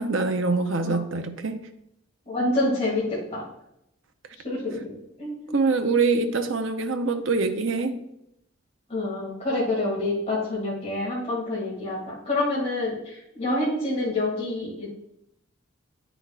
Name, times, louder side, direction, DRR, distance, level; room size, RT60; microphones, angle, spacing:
voice 1, 0.0-1.7 5.5-8.0, right 3 dB, 65° right, 7 dB, 0.7 m, -24 dB
voice 2, 2.3-3.4 4.4-4.8 5.2-5.6 8.9-14.9, left 2 dB, 30° left, -6 dB, 2.2 m, -27 dB
9.1 x 6.0 x 2.4 m, 0.81 s
head